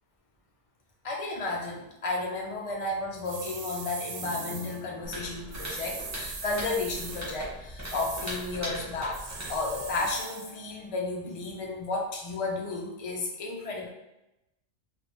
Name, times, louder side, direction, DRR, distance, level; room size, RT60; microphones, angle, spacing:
voice 1, 1.0-13.9, left 3 dB, 40° left, -1 dB, 0.6 m, -33 dB
sound 1, 3.2-4.8 5.5-7.4 7.8-8.5 9.1-10.5, right 5 dB, 80° right, 0.9 m, -40 dB
sound 2, 4.2-9.1 9.7-12.3, left 4 dB, 80° left, 0.9 m, -46 dB
sound 3, 5.0-10.2, equal, 15° right, 0.8 m, -40 dB
3.4 x 2.5 x 3.0 m, 0.92 s
omnidirectional pair, 1.2 m